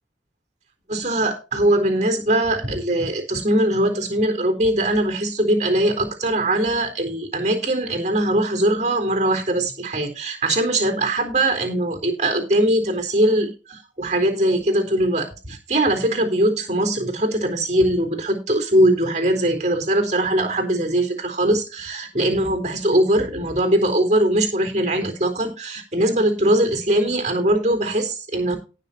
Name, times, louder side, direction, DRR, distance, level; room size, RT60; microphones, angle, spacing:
voice 1, 0.9-28.6, right 1 dB, 40° right, 5 dB, 3.9 m, -21 dB
18.5 x 6.6 x 2.9 m, 0.31 s
head